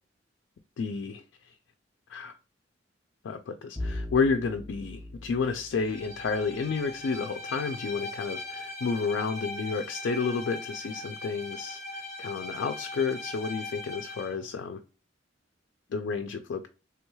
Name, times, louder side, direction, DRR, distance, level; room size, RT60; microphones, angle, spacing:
voice 1, 0.8-1.5 2.1-2.3 3.2-14.8 15.9-16.7, left 5 dB, 75° left, 7 dB, 0.4 m, -31 dB
Bowed string instrument, 3.8-6.8, left 1 dB, ahead, 0.7 m, -39 dB
Bowed string instrument 2, 5.7-14.4, left 2 dB, 35° left, 0.9 m, -40 dB
3.3 x 3.1 x 2.2 m, 0.32 s
head